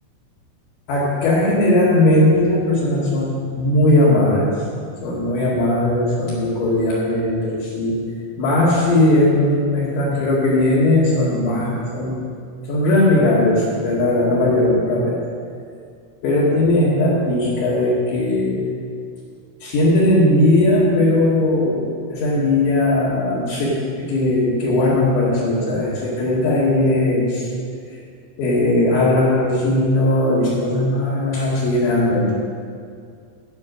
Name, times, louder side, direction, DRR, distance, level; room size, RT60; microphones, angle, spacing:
voice 1, 0.9-4.6 5.0-8.0 8.4-12.2 12.7-15.2 16.2-18.7 19.6-27.5 28.4-32.3, left 1 dB, 65° left, -9 dB, 4.1 m, -18 dB
11.0 x 8.8 x 6.2 m, 2.2 s
omnidirectional pair, 5.7 m